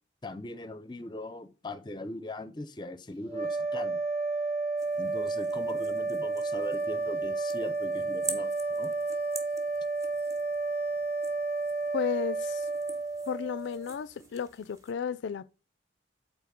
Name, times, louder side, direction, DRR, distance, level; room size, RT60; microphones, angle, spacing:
voice 1, 0.2-4.0 5.0-8.9, left 1 dB, 25° left, 0.5 m, -40 dB
sound 1, 3.3-13.9, right 3 dB, 35° right, 3.4 m, -31 dB
sound 2, 4.8-14.9, right 2 dB, 20° right, 0.9 m, -46 dB
voice 2, 11.9-12.7 13.3-15.5, left 7 dB, 85° left, 0.3 m, -33 dB
5.7 x 4.2 x 6.1 m
head